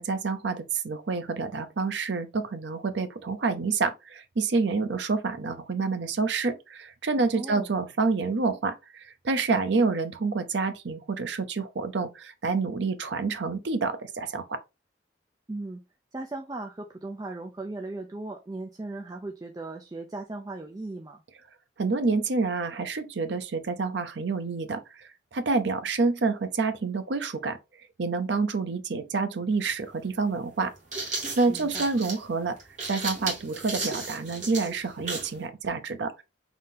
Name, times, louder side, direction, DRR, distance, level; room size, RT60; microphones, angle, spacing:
voice 1, 0.0-14.6 21.8-27.6 28.0-30.7 31.4-32.6 32.9-36.2, right 4 dB, 80° right, 0.6 m, -28 dB
voice 2, 7.3-7.7 15.5-15.8 16.1-21.2 31.5-31.9, right 2 dB, 20° right, 0.4 m, -37 dB
sound 1, 29.5-29.6 30.6-35.4, right 3 dB, 40° right, 1.6 m, -34 dB
3.9 x 2.7 x 3.6 m
head